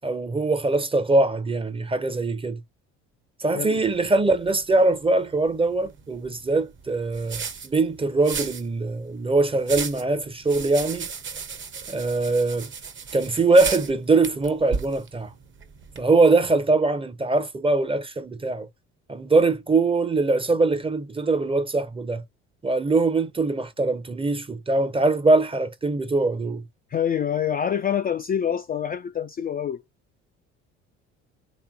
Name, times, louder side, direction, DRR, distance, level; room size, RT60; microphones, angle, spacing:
voice 1, 0.0-2.6 3.4-11.1 11.9-12.7 13.1-15.3 16.0-18.7 19.1-22.2 22.6-26.6, right 3 dB, 15° right, 0.7 m, -22 dB
sound 1, 3.9-16.0, right 5 dB, 35° right, 0.9 m, -36 dB
voice 2, 26.9-29.8, left 8 dB, 25° left, 0.4 m, -26 dB
3.3 x 3.0 x 2.9 m
hypercardioid pair, 60°, 34 cm